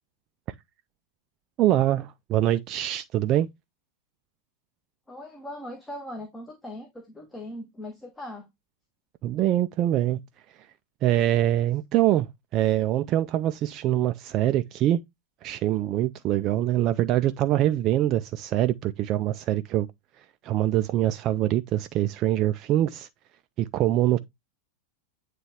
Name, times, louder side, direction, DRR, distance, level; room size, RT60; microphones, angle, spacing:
voice 1, 1.6-3.5 9.2-10.2 10.5-10.7 11.0-15.0 15.4-19.9 20.2-23.1 23.6-24.2, right 13 dB, 35° right, 0.4 m, -24 dB
voice 2, 5.1-8.5, left 1 dB, 10° left, 1.2 m, -39 dB
9.0 x 3.3 x 3.5 m
figure-of-eight pair, 90°, 0 cm